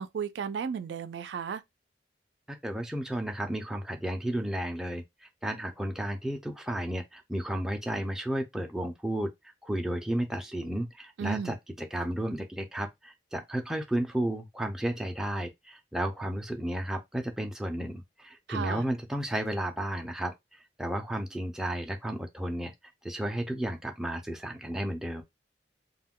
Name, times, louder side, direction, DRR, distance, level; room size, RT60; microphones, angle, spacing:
voice 1, 0.0-1.6 11.2-11.6 18.5-18.8, right 7 dB, 80° right, 0.3 m, -34 dB
voice 2, 2.5-9.3 9.6-22.7 23.0-25.2, right 1 dB, 5° right, 0.4 m, -33 dB
2.3 x 2.1 x 3.5 m
head